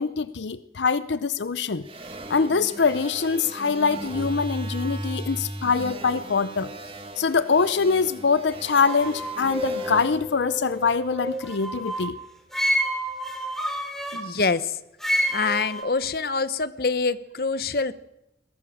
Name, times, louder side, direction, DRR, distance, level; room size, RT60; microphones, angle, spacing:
voice 1, 0.0-1.9 2.3-6.7 7.2-12.2, left 5 dB, 85° left, 15 dB, 0.7 m, -24 dB
sound 1, 1.8-11.3, right 1 dB, 30° right, 1.9 m, -37 dB
sound 2, 8.8-12.1 12.5-14.2 15.0-15.8, equal, ahead, 2.8 m, -29 dB
voice 2, 14.1-14.8 15.3-17.9, left 4 dB, 55° left, 14 dB, 1.0 m, -25 dB
21.5 x 17.0 x 7.4 m, 0.88 s
head